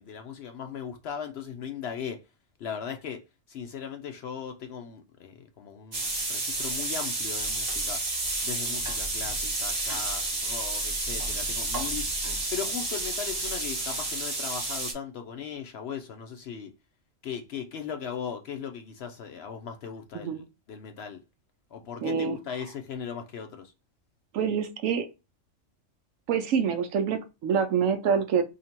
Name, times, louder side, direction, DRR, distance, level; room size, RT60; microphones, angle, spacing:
voice 1, 0.0-2.2 2.6-8.0 8.4-12.0 12.5-16.7 17.2-20.4 20.7-21.2 21.7-23.7, left 7 dB, 65° left, 0.7 m, -38 dB
sound 1, 5.9-14.9, right 2 dB, 35° right, 1.0 m, -30 dB
voice 2, 22.0-22.4 24.3-25.1 26.3-28.4, right 7 dB, 75° right, 1.0 m, -26 dB
2.8 x 2.7 x 4.3 m
omnidirectional pair, 1.4 m